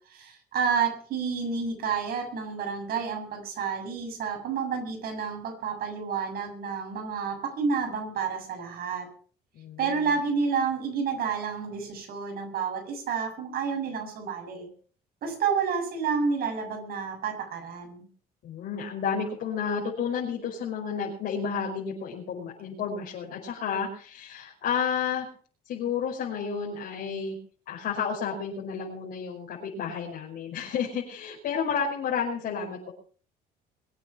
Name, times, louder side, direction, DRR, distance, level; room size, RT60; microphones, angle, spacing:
voice 1, 0.1-9.1 9.8-14.7 15.2-18.0, right 6 dB, 65° right, 3 dB, 7.1 m, -30 dB
voice 2, 9.5-10.1 18.4-25.3 25.7-27.4 27.7-32.9, left 6 dB, 65° left, -3 dB, 5.4 m, -31 dB
23.0 x 8.9 x 6.0 m, 0.43 s
cardioid pair, 110°, 17 cm